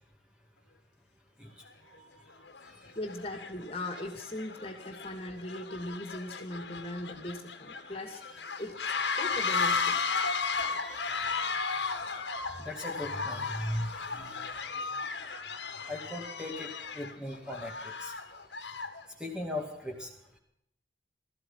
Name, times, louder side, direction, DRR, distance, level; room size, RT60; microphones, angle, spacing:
sound 1, 1.7-1.8 2.5-2.7 3.0-19.0, left 5 dB, 65° left, 2.0 m, -35 dB
voice 1, 1.8-2.2 2.7-2.8 10.3-11.3 11.7-11.9 12.6-14.7 15.9-18.1 19.2-20.1, left 1 dB, 5° right, 1 dB, 2.4 m, -39 dB
voice 2, 2.9-8.2 8.6-10.0, left 1 dB, 30° left, 5 dB, 2.6 m, -39 dB
17.0 x 14.0 x 5.7 m, 0.75 s
head